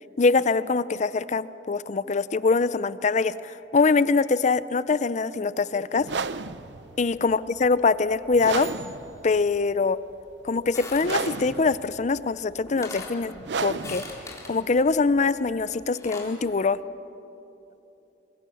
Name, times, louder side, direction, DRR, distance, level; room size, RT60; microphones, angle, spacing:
voice 1, 0.2-6.2 7.0-8.7 9.2-10.0 10.4-14.0 14.5-16.8, left 4 dB, 45° left, 16 dB, 0.5 m, -23 dB
sound 1, 6.0-15.9, right 5 dB, 90° right, 0.6 m, -34 dB
sound 2, 8.3-9.8, left 3 dB, 60° left, 4.5 m, -49 dB
sound 3, 10.7-11.4 12.3-12.4 12.7-13.2 13.7-14.6 15.7-16.4, left 2 dB, 20° left, 3.5 m, -40 dB
26.0 x 23.0 x 7.0 m, 3.0 s
head